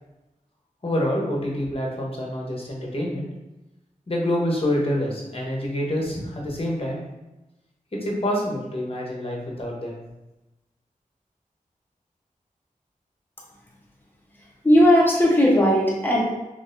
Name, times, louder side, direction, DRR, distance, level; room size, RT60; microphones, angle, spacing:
voice 1, 0.8-3.3 4.1-7.0 7.9-10.0, left 1 dB, 40° left, -2 dB, 1.0 m, -27 dB
voice 2, 14.6-16.2, equal, 15° left, -4 dB, 1.1 m, -17 dB
3.9 x 3.1 x 2.6 m, 1.0 s
wide cardioid pair, 50°, 14 cm